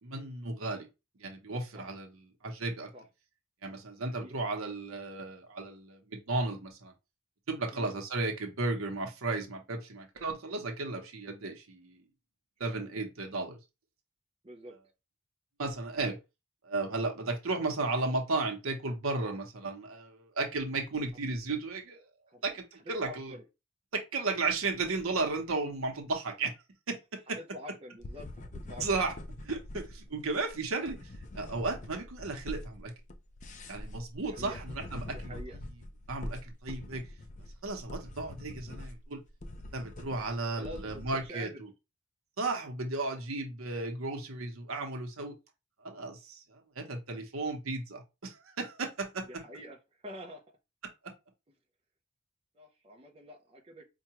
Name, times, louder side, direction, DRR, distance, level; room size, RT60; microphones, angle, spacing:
voice 1, 0.0-0.9 1.2-2.1 2.4-2.9 3.6-6.9 7.5-12.0 12.6-13.6 15.6-16.2 16.6-22.1 22.4-23.3 23.9-26.5 26.9-27.0 27.3-27.4 28.8-29.1 29.4-32.9 33.7-35.4 36.1-37.0 37.6-39.2 39.7-41.5 42.4-45.4 45.8-49.3 51.0-51.1, right 3 dB, 85° right, 0.9 m, -34 dB
voice 2, 4.0-4.3 7.7-7.9 12.6-12.9 14.4-14.8 22.3-22.5 22.8-23.4 27.4-28.9 34.2-34.6 35.1-35.6 40.3-41.6 49.3-50.4 52.5-53.8, equal, 25° right, 0.6 m, -47 dB
sound 1, 28.0-41.3, left 1 dB, 35° left, 0.4 m, -44 dB
4.5 x 2.3 x 2.9 m
head